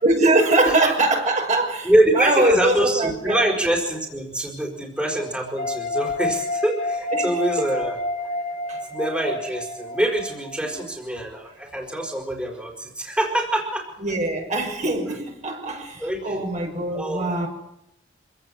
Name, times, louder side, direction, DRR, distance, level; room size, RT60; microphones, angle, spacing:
voice 1, 0.0-3.5 7.1-7.3 8.7-8.8 10.6-10.7 14.0-17.5, right 2 dB, 40° right, 6.1 m, -22 dB
voice 2, 1.8-8.0 8.9-13.9 16.0-16.4 16.9-17.3, right 1 dB, 5° right, 4.7 m, -24 dB
sound 1, 5.6-10.8, left 2 dB, 45° left, 3.4 m, -29 dB
26.0 x 17.5 x 8.3 m
head